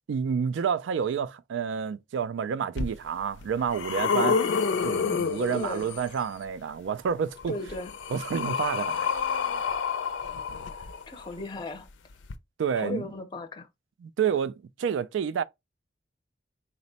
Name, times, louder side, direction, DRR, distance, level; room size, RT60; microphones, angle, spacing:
voice 1, 0.1-4.4 4.8-7.5 8.1-9.1 12.6-13.1 14.0-15.4, right 7 dB, 85° right, 0.3 m, -29 dB
sound 1, 2.8-2.9 3.4-6.2 7.4-11.3 12.2-12.3, left 5 dB, 80° left, 0.5 m, -29 dB
voice 2, 5.5-5.8 7.5-7.9 10.8-11.9 12.8-13.7, left 2 dB, 25° left, 0.5 m, -36 dB
4.0 x 2.1 x 4.0 m
head